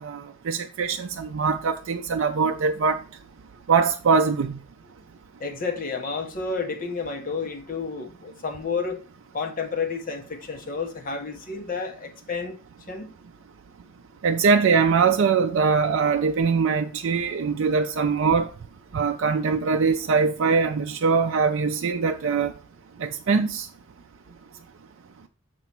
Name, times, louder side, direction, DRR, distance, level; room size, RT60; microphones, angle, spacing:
voice 1, 0.0-3.0 3.7-4.6 14.2-18.5 18.9-22.5 23.0-23.7, right 5 dB, 60° right, 0.4 m, -22 dB
voice 2, 5.4-9.0 9.3-12.6 12.9-13.1, left 4 dB, 40° left, 1.0 m, -30 dB
6.7 x 3.0 x 5.7 m
head